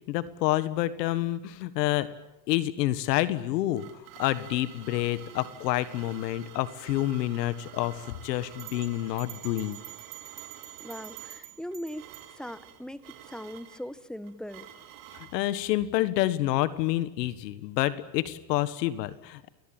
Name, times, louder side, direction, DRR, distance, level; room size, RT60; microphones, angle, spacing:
voice 1, 0.1-2.1 2.5-3.8 4.2-9.8 15.1-19.5, left 15 dB, 75° left, 14 dB, 1.7 m, -28 dB
sound 1, 3.3-15.4, right 11 dB, 60° right, 4.5 m, -49 dB
sound 2, 8.6-12.3, right 15 dB, 80° right, 4.7 m, -46 dB
voice 2, 10.8-14.7, equal, ahead, 14 dB, 1.2 m, -40 dB
29.5 x 22.0 x 9.0 m, 0.94 s
supercardioid pair, 125°, 49 cm